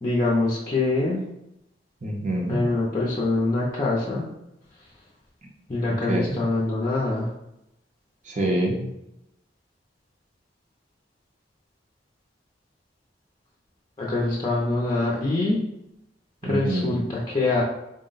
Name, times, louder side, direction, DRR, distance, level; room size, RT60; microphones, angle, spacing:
voice 1, 0.0-1.2 2.5-4.3 5.7-7.3 14.0-15.6 16.5-17.6, left 2 dB, 25° left, -4 dB, 0.6 m, -24 dB
voice 2, 2.0-2.6 5.8-6.4 8.2-8.8 16.4-17.0, right 1 dB, 45° right, 1 dB, 0.7 m, -26 dB
3.8 x 2.2 x 3.9 m, 0.85 s
head